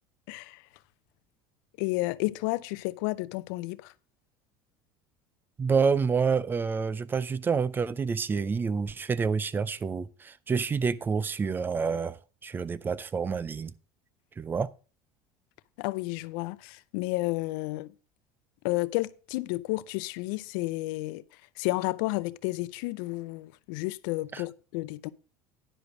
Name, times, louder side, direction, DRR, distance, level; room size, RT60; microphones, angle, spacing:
voice 1, 0.3-0.6 1.8-3.9 15.8-17.9 18.6-21.2 21.6-25.1, left 21 dB, 75° left, 0.5 m, -31 dB
voice 2, 5.6-12.2 12.4-13.7 14.4-14.7 24.3-24.4, right 5 dB, 20° right, 0.4 m, -28 dB
9.9 x 5.1 x 6.1 m
supercardioid pair, 135°, 11 cm